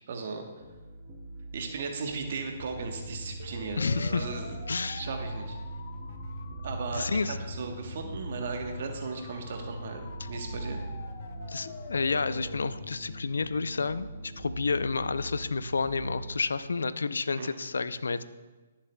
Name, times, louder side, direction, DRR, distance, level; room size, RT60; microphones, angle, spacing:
voice 1, 0.1-0.5 1.5-4.6 4.9-5.6 6.6-10.8 17.4-17.5, right 4 dB, 60° right, 3 dB, 1.1 m, -36 dB
sound 1, 0.6-16.3, right 1 dB, 25° right, 2.9 m, -41 dB
sound 2, 2.8-14.2, left 4 dB, 60° left, 1.0 m, -45 dB
voice 2, 3.8-4.3 4.7-5.1 6.9-7.4 11.5-18.2, left 4 dB, 85° left, 14 dB, 0.5 m, -30 dB
19.5 x 7.3 x 2.3 m, 1.3 s
hypercardioid pair, 145°, 0 cm